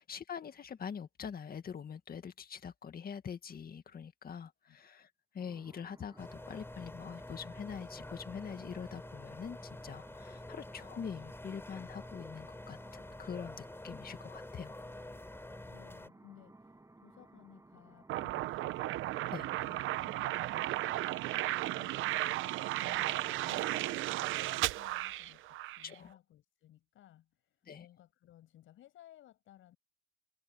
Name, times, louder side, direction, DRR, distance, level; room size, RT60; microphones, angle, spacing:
voice 1, 0.0-5.1 5.3-14.8 19.3-19.5 25.8-26.1 27.6-27.9, left 7 dB, 50° left, 2.0 m, -44 dB
sound 1, 5.4-23.3, right 2 dB, 15° right, 7.4 m, -59 dB
sound 2, 6.2-16.1, left 1 dB, 10° left, 6.0 m, -48 dB
voice 2, 15.6-19.1 19.4-21.1 21.7-29.8, left 12 dB, 80° left, 7.7 m, -60 dB
sound 3, 18.1-25.9, right 16 dB, 90° right, 0.8 m, -35 dB
cardioid pair, 90°, 20 cm